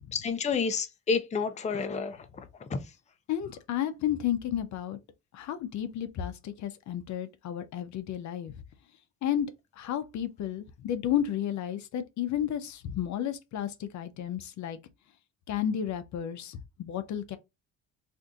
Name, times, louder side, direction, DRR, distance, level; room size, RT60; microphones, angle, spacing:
voice 1, 0.1-2.2 2.7-2.8, left 5 dB, 25° left, 0.5 m, -29 dB
voice 2, 3.3-5.0 5.3-8.6 9.2-9.5 9.8-14.8 15.5-17.4, left 10 dB, 70° left, 0.6 m, -32 dB
2.6 x 2.5 x 3.4 m
cardioid pair, 90°, 30 cm